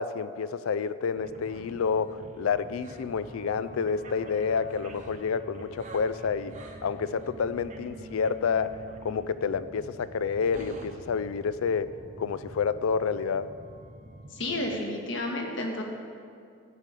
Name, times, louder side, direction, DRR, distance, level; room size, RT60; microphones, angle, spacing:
voice 1, 0.0-6.6 6.8-11.9 12.2-13.5, left 6 dB, 90° left, 15 dB, 0.4 m, -29 dB
sound 1, 1.2-14.7, right 1 dB, 35° right, 0.8 m, -45 dB
voice 2, 14.3-15.8, left 1 dB, 65° left, 2 dB, 1.4 m, -31 dB
12.5 x 4.9 x 8.3 m, 2.3 s
head